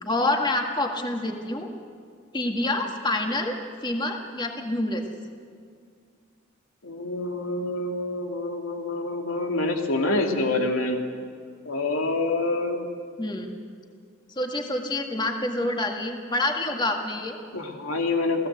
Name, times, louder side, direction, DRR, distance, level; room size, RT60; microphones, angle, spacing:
voice 1, 0.0-1.7 2.3-5.0 13.2-13.5 14.3-17.4, left 2 dB, 20° left, 3 dB, 1.9 m, -27 dB
voice 2, 6.8-11.0 11.6-12.9 17.5-18.5, left 2 dB, 90° left, 3 dB, 2.7 m, -26 dB
29.0 x 17.0 x 8.1 m, 2.1 s
head